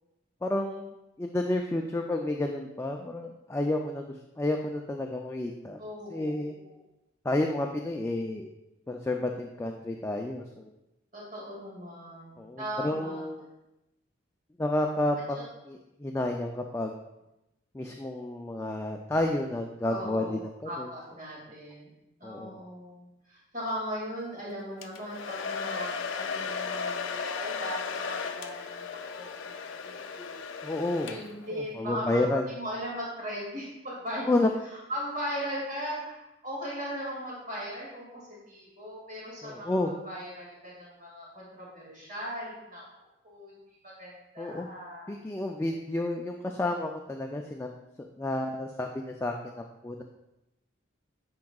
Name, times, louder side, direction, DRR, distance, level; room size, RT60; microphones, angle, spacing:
voice 1, 0.4-4.1 4.4-5.8 6.1-6.6 7.2-8.5 8.9-10.7 12.4-13.5 14.6-16.9 17.7-20.9 22.2-22.6 30.6-31.2 31.5-32.4 34.3-34.5 39.4-39.9 44.4-44.7 45.1-47.7 48.2-50.0, left 1 dB, 15° left, 2 dB, 0.3 m, -30 dB
voice 2, 5.8-6.7 11.1-13.2 15.3-15.4 19.9-21.9 22.2-28.9 29.2-30.4 31.1-34.2 34.7-39.8 40.0-42.8 43.2-45.1, equal, 45° right, -6 dB, 2.2 m, -38 dB
Domestic sounds home sounds, 24.8-31.5, left 5 dB, 80° left, 0.4 m, -35 dB
9.5 x 4.8 x 2.3 m, 0.93 s
head